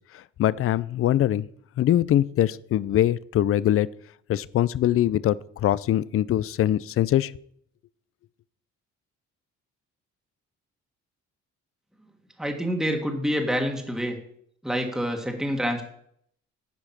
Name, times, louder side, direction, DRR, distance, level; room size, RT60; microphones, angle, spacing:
voice 1, 0.1-1.5 1.8-3.9 4.3-7.3, left 12 dB, 50° left, 19 dB, 0.4 m, -23 dB
voice 2, 12.4-14.2 14.6-15.8, equal, ahead, 2 dB, 1.5 m, -27 dB
10.5 x 4.9 x 5.8 m, 0.67 s
cardioid pair, 90°, 30 cm